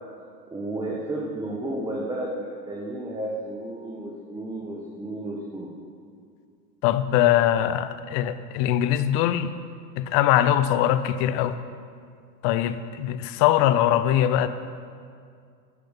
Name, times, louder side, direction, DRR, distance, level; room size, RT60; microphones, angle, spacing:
voice 1, 0.5-5.7, right 1 dB, 10° right, -4 dB, 1.5 m, -32 dB
voice 2, 6.8-9.5 10.0-11.6 12.4-14.5, left 11 dB, 35° left, 13 dB, 0.6 m, -22 dB
11.0 x 10.0 x 5.5 m, 2.2 s
hypercardioid pair, 100°, 50 cm